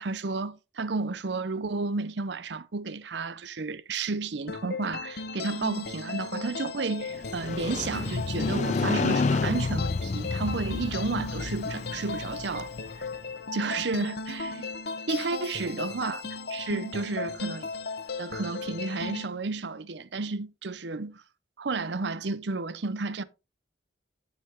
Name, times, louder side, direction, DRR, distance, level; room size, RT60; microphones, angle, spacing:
voice 1, 0.0-12.7 13.5-14.7 15.1-17.7 18.2-21.2 21.6-23.2, right 3 dB, 70° right, 0.7 m, -32 dB
sound 1, 4.5-19.3, left 4 dB, 60° left, 0.8 m, -37 dB
Motorcycle, 7.1-13.1, left 4 dB, 40° left, 0.4 m, -30 dB
11.5 x 5.6 x 3.5 m
head